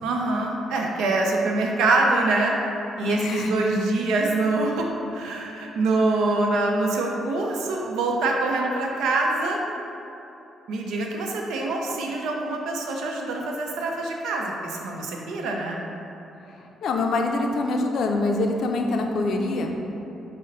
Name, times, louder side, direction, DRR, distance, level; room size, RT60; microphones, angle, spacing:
voice 1, 0.0-2.5 3.0-9.6 10.7-15.8, right 2 dB, 85° right, 0 dB, 0.5 m, -25 dB
voice 2, 3.1-3.8 16.8-19.8, left 2 dB, 65° left, 3 dB, 0.4 m, -25 dB
5.2 x 2.1 x 3.8 m, 3.0 s
cardioid pair, 90°, 0 cm